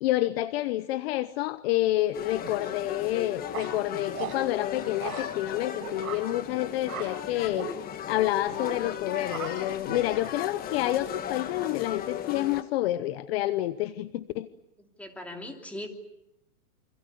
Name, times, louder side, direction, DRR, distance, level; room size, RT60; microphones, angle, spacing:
voice 1, 0.0-7.7 8.0-14.5, left 15 dB, 45° left, 14 dB, 1.0 m, -28 dB
sound 1, 2.1-12.6, left 9 dB, 20° left, 1.4 m, -36 dB
sound 2, 2.4-2.7 3.5-4.4 5.0-5.2 5.8-6.2 6.9-7.1 7.5-7.7 8.5-8.8 9.2-9.5 9.9-10.4, right 8 dB, 70° right, 7.4 m, -37 dB
voice 2, 15.0-15.9, left 1 dB, 5° left, 4 dB, 3.0 m, -39 dB
28.5 x 26.0 x 6.9 m, 0.88 s
hypercardioid pair, 145°, 44 cm